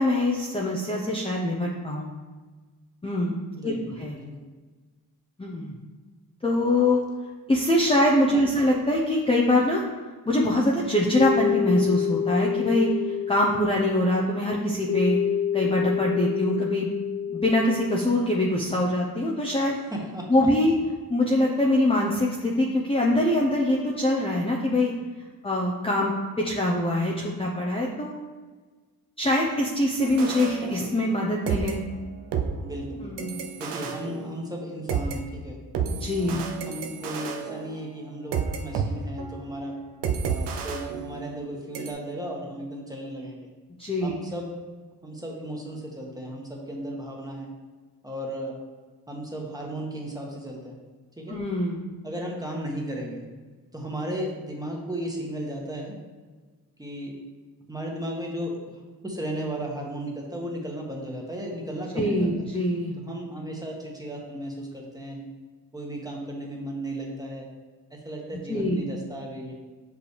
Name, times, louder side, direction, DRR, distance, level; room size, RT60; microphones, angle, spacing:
voice 1, 0.0-2.1 3.0-4.2 5.4-5.7 6.4-7.0 7.5-9.8 10.3-15.2 15.5-16.9 17.3-19.8 20.3-20.7 21.1-24.9 25.4-28.1 29.2-31.8 33.0-33.4 35.9-36.4 43.8-44.1 51.3-51.9 61.9-63.0 68.5-68.8, left 1 dB, 15° left, -3 dB, 0.8 m, -24 dB
voice 2, 3.6-4.4 8.3-8.5 19.9-20.5 32.6-33.1 33.6-35.6 36.2-39.8 40.2-43.5 44.0-44.5 45.0-47.5 48.0-48.5 49.1-50.8 51.2-51.4 52.0-53.2 53.7-55.9 56.8-57.1 57.7-58.5 59.0-62.3 63.0-65.3 65.7-67.5 67.9-69.5, right 1 dB, 10° right, -1 dB, 1.4 m, -35 dB
sound 1, 11.1-18.4, left 8 dB, 65° left, 0.7 m, -28 dB
sound 2, 30.0-31.2 31.5-35.2 35.7-38.9 39.2-39.4 40.0-41.5 41.7-41.9, right 6 dB, 80° right, 0.7 m, -31 dB
6.6 x 5.1 x 3.3 m, 1.4 s
cardioid pair, 75°, 40 cm